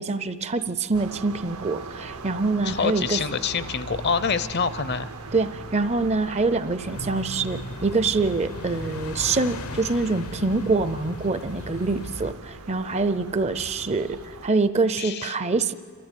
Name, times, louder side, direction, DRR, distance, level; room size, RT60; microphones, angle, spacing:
voice 1, 0.0-3.2 5.3-15.7, right 3 dB, 30° right, 13 dB, 0.5 m, -25 dB
sound 1, 0.9-14.5, right 3 dB, 80° right, 1.1 m, -40 dB
voice 2, 2.6-5.1 15.0-15.4, left 5 dB, 45° left, 15 dB, 0.6 m, -26 dB
sound 2, 6.8-12.3, left 2 dB, 80° left, 0.9 m, -37 dB
28.0 x 13.5 x 9.2 m, 2.1 s
head